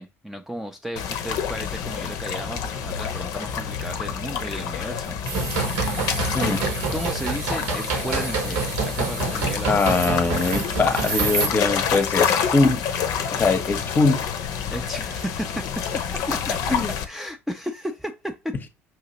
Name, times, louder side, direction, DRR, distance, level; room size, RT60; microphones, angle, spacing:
voice 1, 0.0-5.2 6.9-9.8 14.7-16.0 16.3-16.8 17.1-18.5, equal, 5° right, 0.5 m, -34 dB
sound 1, 1.0-17.0, left 7 dB, 55° left, 0.6 m, -28 dB
sound 2, 5.2-11.5, right 4 dB, 65° right, 1.1 m, -27 dB
voice 2, 9.7-12.8 13.4-14.2 16.7-16.9, left 3 dB, 25° left, 0.8 m, -22 dB
5.7 x 2.8 x 2.8 m
figure-of-eight pair, 55°, 7 cm